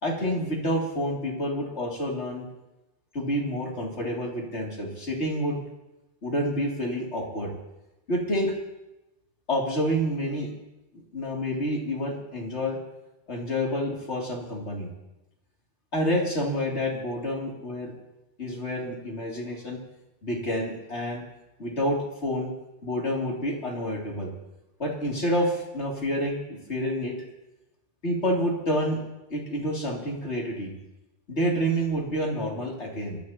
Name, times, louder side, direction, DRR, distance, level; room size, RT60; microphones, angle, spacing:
voice 1, 0.0-2.5 3.1-5.6 6.2-7.5 8.1-8.5 9.5-10.5 11.1-12.8 13.3-14.9 15.9-17.9 18.4-19.8 20.2-21.2 21.6-22.5 22.8-24.3 24.8-27.1 28.0-29.0 29.3-30.7 31.3-33.2, equal, 80° left, -2 dB, 3.3 m, -28 dB
26.5 x 13.0 x 3.0 m, 0.97 s
omnidirectional pair, 1.1 m